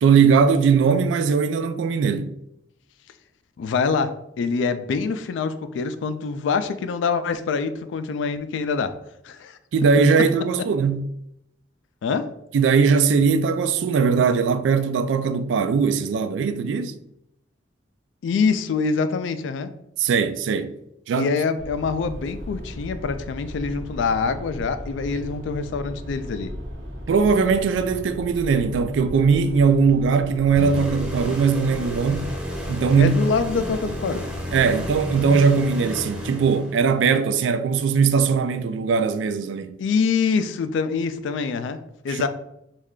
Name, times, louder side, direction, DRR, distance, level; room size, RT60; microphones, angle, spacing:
voice 1, 0.0-2.3 9.7-11.0 12.5-16.9 20.0-20.7 21.1-21.3 27.1-32.3 32.7-33.1 34.5-39.8 42.1-42.3, right 5 dB, 75° right, 0.3 m, -20 dB
voice 2, 3.6-4.1 4.4-9.0 9.2-9.6 12.0-12.3 18.2-19.7 21.2-26.5 33.0-34.3 39.8-41.8 42.0-42.3, left 5 dB, 75° left, 0.3 m, -25 dB
sound 1, 21.6-35.3, equal, 90° right, 0.9 m, -36 dB
sound 2, 30.5-37.0, equal, 5° right, 0.6 m, -32 dB
3.2 x 2.4 x 3.6 m
head